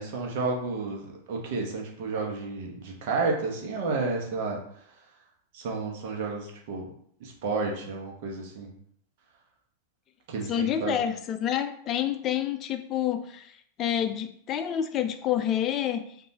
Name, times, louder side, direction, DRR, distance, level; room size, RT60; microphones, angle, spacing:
voice 1, 0.0-4.6 5.5-6.9 7.2-8.7 10.3-11.0, right 3 dB, 50° right, 0 dB, 1.1 m, -31 dB
voice 2, 10.5-13.5 13.8-16.0, left 10 dB, 30° left, 8 dB, 0.5 m, -28 dB
5.2 x 2.7 x 2.9 m, 0.64 s
figure-of-eight pair, 90°, 0 cm